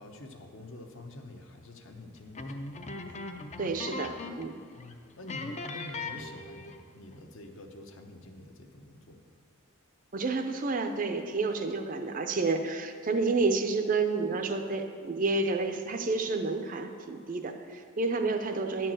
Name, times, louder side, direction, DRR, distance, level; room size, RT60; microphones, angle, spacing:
voice 1, 0.0-3.0 4.7-9.2, left 1 dB, 60° left, 4 dB, 0.9 m, -47 dB
sound 1, 2.3-4.6 4.8-4.9 5.3-6.9, left 3 dB, 30° left, 0.5 m, -39 dB
voice 2, 3.6-4.6 10.1-18.9, right 3 dB, 40° right, 6 dB, 0.5 m, -30 dB
10.5 x 4.6 x 7.5 m, 2.2 s
head